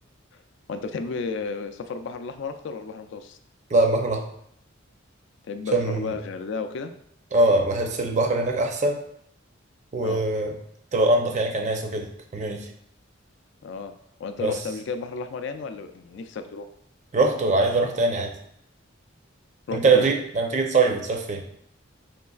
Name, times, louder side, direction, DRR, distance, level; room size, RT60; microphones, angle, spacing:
voice 1, 0.7-3.4 5.5-6.9 10.0-10.2 13.6-13.9 14.2-16.7 19.7-20.1, left 4 dB, 60° left, 8 dB, 0.3 m, -33 dB
voice 2, 3.7-4.3 5.7-6.2 7.3-9.0 9.9-10.5 10.9-12.7 14.4-14.6 17.1-18.3 19.7-21.4, right 2 dB, 35° right, 3 dB, 0.5 m, -22 dB
5.1 x 3.1 x 2.3 m, 0.72 s
head